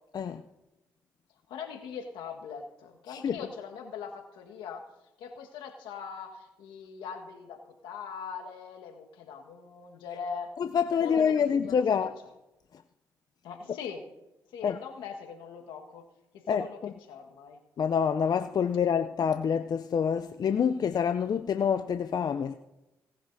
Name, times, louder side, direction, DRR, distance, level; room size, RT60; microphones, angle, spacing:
voice 1, 1.5-4.8 5.2-10.5 11.0-11.3 11.6-12.1 13.4-14.0 14.5-16.0 16.3-16.8 17.1-17.6, left 6 dB, 80° left, 1.5 m, -41 dB
voice 2, 3.1-3.4 10.6-12.1 14.6-14.8 16.5-16.6 17.8-22.5, left 7 dB, 55° left, 0.5 m, -27 dB
18.5 x 11.0 x 2.7 m
hypercardioid pair, 45°, 8 cm